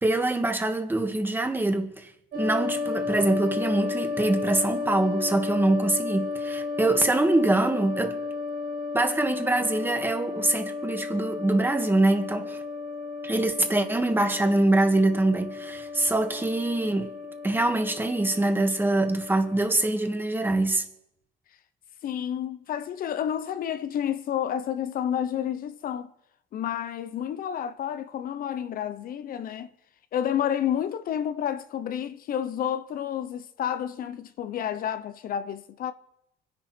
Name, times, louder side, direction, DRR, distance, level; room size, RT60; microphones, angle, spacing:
voice 1, 0.0-8.2 8.9-12.6 13.2-17.1 17.4-20.8, right 2 dB, 10° right, 2.1 m, -24 dB
sound 1, 2.3-19.6, left 4 dB, 55° right, 3.0 m, -33 dB
voice 2, 22.0-26.1 26.5-29.7 30.1-35.9, left 9 dB, 60° left, 0.9 m, -30 dB
25.0 x 11.0 x 4.5 m
cardioid pair, 110°, 17 cm